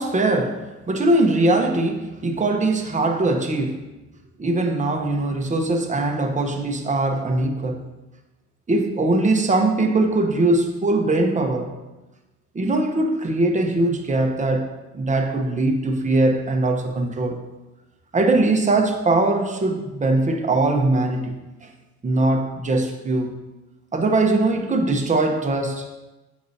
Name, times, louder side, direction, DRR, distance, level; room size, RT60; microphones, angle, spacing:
voice 1, 0.0-3.8 4.4-7.8 8.7-11.7 12.5-14.7 14.9-17.4 18.1-21.7 22.0-23.3 23.9-25.9, right 2 dB, 25° right, 3 dB, 1.0 m, -21 dB
8.1 x 4.7 x 2.8 m, 1.1 s
cardioid pair, 90°, 30 cm